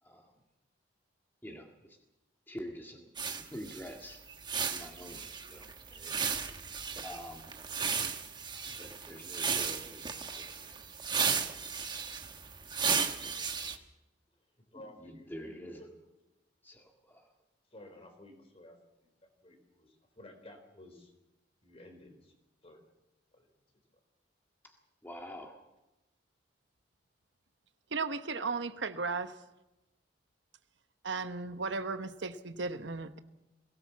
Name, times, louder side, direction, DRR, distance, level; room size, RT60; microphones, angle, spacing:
voice 1, 0.0-0.3 1.4-2.0 2.5-3.1 3.4-4.2 4.7-6.6 7.0-7.6 8.5-10.8 11.7-12.2 14.7-15.8 16.6-17.3 24.6-24.7 25.0-25.6, equal, 10° left, 1 dB, 1.9 m, -47 dB
sound 1, 3.2-13.8, right 6 dB, 25° right, 1.3 m, -35 dB
voice 2, 14.4-16.0 17.7-18.8 19.0-21.1 21.6-22.3 22.6-22.9 23.3-23.5, left 1 dB, 30° left, 5 dB, 4.1 m, -54 dB
voice 3, 27.9-29.3 31.0-33.2, right 4 dB, 70° right, 10 dB, 1.1 m, -35 dB
21.5 x 18.0 x 7.3 m, 0.99 s
head